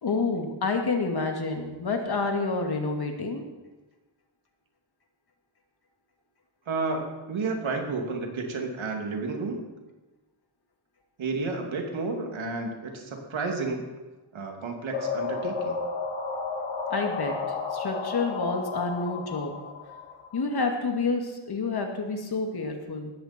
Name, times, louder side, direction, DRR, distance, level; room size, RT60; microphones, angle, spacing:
voice 1, 0.0-3.4 16.9-17.3 17.7-19.5 20.3-23.1, left 3 dB, 55° left, 3 dB, 2.3 m, -28 dB
voice 2, 6.7-9.6 11.2-13.9 14.3-15.8, right 3 dB, 80° right, 2 dB, 2.8 m, -31 dB
sound 1, 14.9-20.7, left 5 dB, 85° left, 2.1 m, -32 dB
18.5 x 14.0 x 4.5 m, 1.1 s
wide cardioid pair, 155°, 46 cm